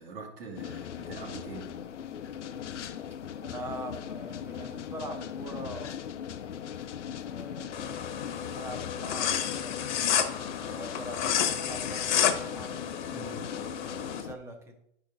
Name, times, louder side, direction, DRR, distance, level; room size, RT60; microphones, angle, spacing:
voice 1, 0.0-1.8 2.8-3.0 13.1-13.5, right 3 dB, 50° right, -2 dB, 2.3 m, -44 dB
sound 1, 0.6-14.4, left 8 dB, 85° left, 0.7 m, -39 dB
voice 2, 3.4-6.0 7.2-12.8 13.5-14.8, right 1 dB, 5° right, 4 dB, 0.7 m, -43 dB
sound 2, 7.7-14.2, left 9 dB, 40° left, 0.9 m, -31 dB
11.0 x 4.9 x 3.9 m, 0.76 s
hypercardioid pair, 145°, 35 cm